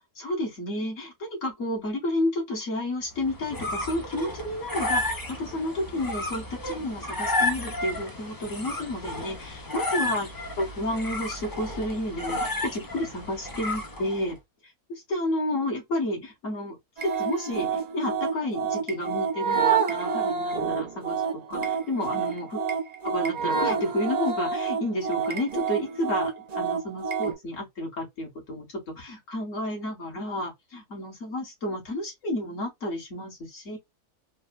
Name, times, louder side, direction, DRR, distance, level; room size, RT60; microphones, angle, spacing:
voice 1, 0.0-10.3 10.6-14.4 14.9-16.8 17.0-22.6 23.1-33.8, left 1 dB, 55° left, 1.9 m, -31 dB
sound 1, 3.2-14.3, left 2 dB, 30° left, 0.3 m, -32 dB
sound 2, 17.0-27.3, right 6 dB, 60° right, 0.4 m, -28 dB
3.9 x 2.1 x 2.3 m
omnidirectional pair, 1.7 m